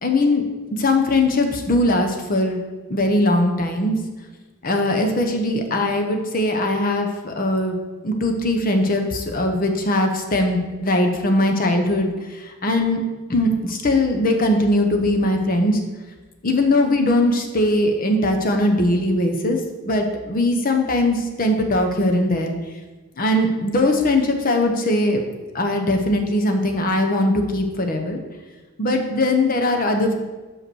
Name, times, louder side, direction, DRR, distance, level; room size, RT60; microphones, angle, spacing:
voice 1, 0.0-0.5 0.8-2.6 2.9-4.0 4.6-7.8 8.0-12.1 12.6-13.0 13.3-15.8 16.4-19.6 19.8-22.5 23.2-25.2 25.5-28.2 28.8-30.2, left 1 dB, 40° left, 4 dB, 0.9 m, -20 dB
5.8 x 5.5 x 6.2 m, 1.2 s
head